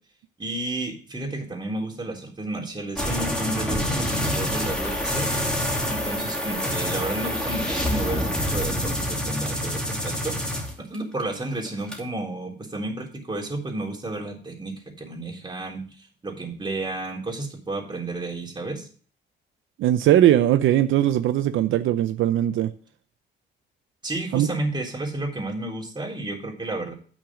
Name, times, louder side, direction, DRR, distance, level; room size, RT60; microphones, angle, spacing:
voice 1, 0.4-5.3 5.9-18.9 24.0-26.9, right 2 dB, 20° right, 3.5 m, -32 dB
sound 1, 3.0-11.2 11.5-12.0, left 1 dB, 5° left, 2.8 m, -27 dB
voice 2, 19.8-22.7 24.3-24.5, right 12 dB, 80° right, 0.6 m, -20 dB
8.8 x 6.3 x 6.1 m
cardioid pair, 90°, 20 cm